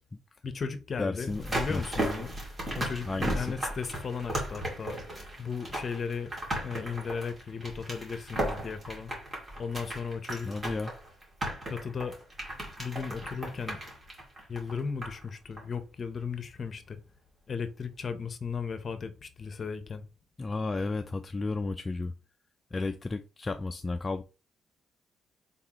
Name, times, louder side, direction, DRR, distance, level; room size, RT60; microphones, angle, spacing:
voice 1, 0.4-2.4 2.7-5.0 5.4-6.3 6.6-9.1 9.6-10.5 11.7-12.1 12.8-13.8 14.5-17.0 17.5-20.0, left 5 dB, 45° left, 0.7 m, -36 dB
voice 2, 1.0-1.8 3.1-3.6 10.4-10.9 20.4-22.1 22.7-24.2, left 3 dB, 25° left, 0.3 m, -33 dB
sound 1, 1.3-15.3 15.6-15.7, right 1 dB, 30° right, 2.2 m, -36 dB
4.1 x 3.6 x 2.9 m
cardioid pair, 90°, 0 cm